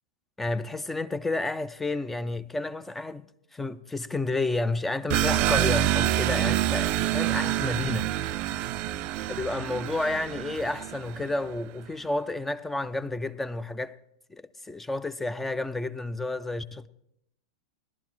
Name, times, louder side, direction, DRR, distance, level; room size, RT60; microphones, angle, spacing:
voice 1, 0.4-8.0 9.3-14.0 14.3-16.9, left 2 dB, 10° left, 0.5 m, -31 dB
sound 1, 5.1-11.4, right 13 dB, 45° right, 0.4 m, -27 dB
19.0 x 12.0 x 3.1 m
hypercardioid pair, 105°, 3 cm